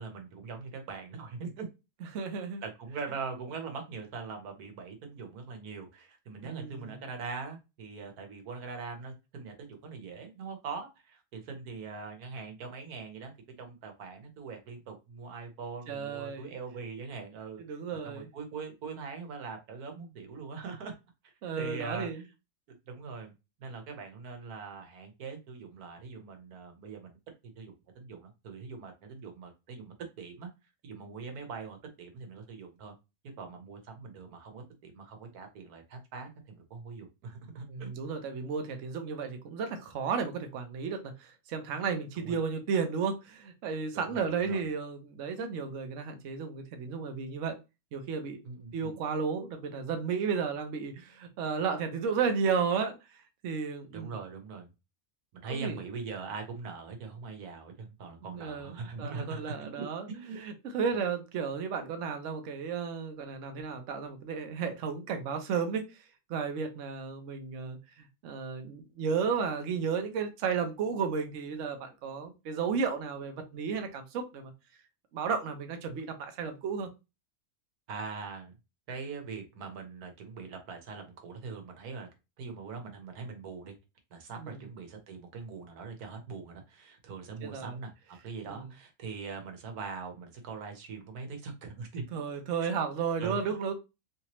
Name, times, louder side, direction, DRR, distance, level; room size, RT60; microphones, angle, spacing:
voice 1, 0.0-1.7 2.6-13.3 13.6-17.8 18.0-20.9 21.2-22.3 22.9-23.3 23.6-27.2 27.6-30.5 30.8-32.9 33.4-37.9 42.2-42.4 43.9-44.6 48.4-49.0 53.9-54.7 55.3-60.4 77.9-78.5 78.9-82.1 82.4-83.7 84.1-92.1 92.6-92.7 93.2-93.4, right 4 dB, 85° right, 1.4 m, -42 dB
voice 2, 2.1-2.6 6.4-7.0 15.9-16.5 17.7-18.3 21.4-22.2 37.7-47.6 47.9-48.4 48.7-54.1 55.5-55.8 58.2-60.1 60.4-66.0 66.3-74.5 75.1-76.9 84.4-84.6 87.4-87.7 88.5-88.6 92.1-93.7, right 6 dB, 60° right, 1.0 m, -33 dB
3.2 x 2.9 x 2.9 m
omnidirectional pair, 1.5 m